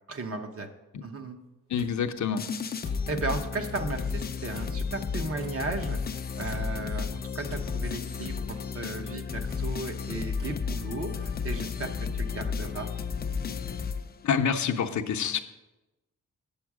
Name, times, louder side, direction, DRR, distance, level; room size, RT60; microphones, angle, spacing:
voice 1, 0.1-0.7 1.0-1.4 3.1-6.0 6.4-12.9, right 3 dB, 45° right, 4 dB, 1.0 m, -35 dB
sound 1, 1.4-2.0 2.8-3.1 3.6-3.8 4.5-4.9 5.4-5.6 6.5-6.9 7.5-8.0 8.5-8.7 9.4-9.7 10.4-10.6 11.2-11.4, equal, 75° right, 2.2 m, -51 dB
voice 2, 1.7-2.4 14.2-15.4, left 7 dB, 70° left, 6 dB, 0.7 m, -27 dB
sound 2, 2.4-14.5, left 5 dB, 30° left, 0.4 m, -33 dB
8.8 x 7.1 x 4.8 m, 1.0 s
wide cardioid pair, 145°, 31 cm